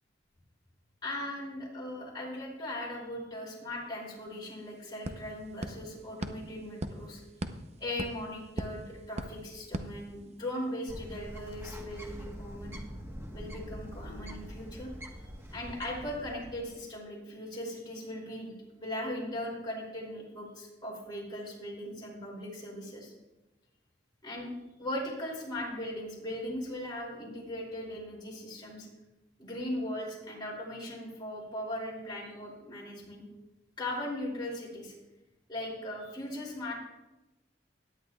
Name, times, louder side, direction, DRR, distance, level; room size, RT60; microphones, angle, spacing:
voice 1, 1.0-7.2 7.8-12.8 13.3-14.9 15.5-23.1 24.2-24.5 24.8-28.9 29.4-33.2 33.8-34.9 35.5-36.7, left 1 dB, 25° left, -4 dB, 2.8 m, -39 dB
sound 1, 3.9-4.0 4.3-10.7, right 1 dB, 40° right, 0.7 m, -41 dB
Bird, 10.9-16.8, equal, 15° right, 1.2 m, -44 dB
17.0 x 11.0 x 2.3 m, 1.0 s
head